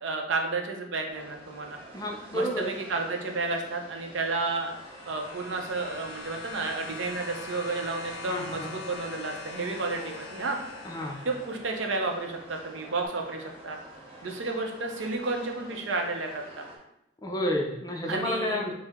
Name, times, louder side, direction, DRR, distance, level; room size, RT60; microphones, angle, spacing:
voice 1, 0.0-1.8 2.3-4.7 5.1-10.6 11.2-13.8 14.2-16.6 18.1-18.6, right 3 dB, 70° right, 2 dB, 0.6 m, -31 dB
sound 1, 1.1-16.8, right 1 dB, 30° right, 0.8 m, -48 dB
voice 2, 1.9-2.7 8.3-8.7 10.8-11.2 17.2-18.7, left 1 dB, 20° left, 1 dB, 0.4 m, -30 dB
sound 2, 4.2-12.0 13.0-13.1, left 3 dB, 80° left, 0.5 m, -43 dB
4.5 x 2.0 x 3.5 m, 0.82 s
head